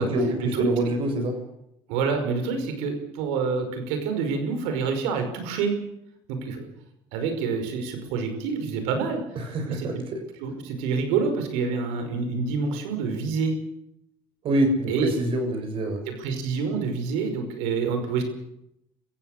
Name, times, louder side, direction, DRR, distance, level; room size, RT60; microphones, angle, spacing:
voice 1, 0.0-1.4 9.3-10.0 14.4-16.0, right 1 dB, 55° right, 6 dB, 6.8 m, -25 dB
voice 2, 1.9-5.7 6.3-6.7 7.1-9.2 9.7-9.9 10.4-13.6 14.9-15.1 16.1-18.2, right 5 dB, 85° right, 7 dB, 5.4 m, -27 dB
26.5 x 15.5 x 6.7 m, 0.82 s
supercardioid pair, 85°, 11 cm